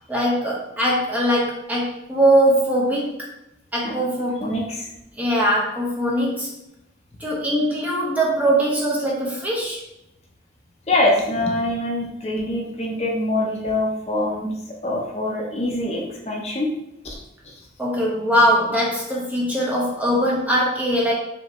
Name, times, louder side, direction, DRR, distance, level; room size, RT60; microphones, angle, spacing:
voice 1, 0.1-3.3 3.7-4.5 5.2-6.5 7.2-9.8 17.8-21.1, equal, 10° right, -4 dB, 0.8 m, -21 dB
voice 2, 4.4-4.9 10.9-14.5 14.8-16.7 17.0-17.1 17.4-17.6, left 1 dB, 35° left, -1 dB, 0.7 m, -24 dB
5.3 x 2.8 x 3.1 m, 0.86 s
head